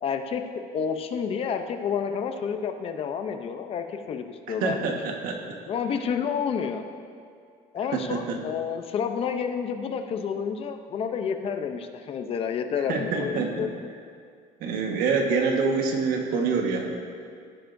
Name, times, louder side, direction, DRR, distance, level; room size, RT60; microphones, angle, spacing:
voice 1, 0.0-0.4 0.7-5.0 5.7-6.8 7.7-13.7, left 7 dB, 40° left, 7 dB, 0.6 m, -29 dB
voice 2, 4.5-5.5 7.9-8.4 12.9-13.7 14.6-16.9, right 4 dB, 70° right, 2 dB, 1.4 m, -26 dB
16.5 x 9.2 x 2.6 m, 2.3 s
cardioid pair, 160°, 15 cm